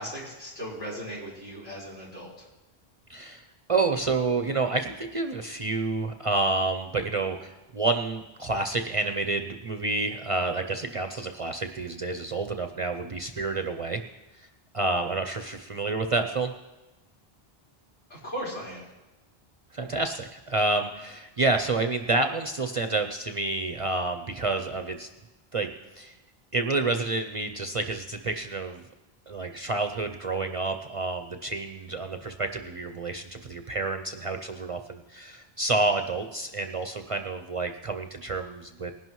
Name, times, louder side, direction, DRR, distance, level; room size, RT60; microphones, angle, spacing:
voice 1, 0.0-2.5 18.1-18.9, equal, 75° left, -7 dB, 4.6 m, -37 dB
voice 2, 3.1-14.0 14.4-14.5 14.7-16.5 19.7-25.1 25.5-25.7 26.0-26.2 26.5-28.8 29.3-38.9, right 3 dB, 40° right, 6 dB, 0.5 m, -29 dB
20.0 x 11.0 x 3.1 m, 1.1 s
omnidirectional pair, 1.1 m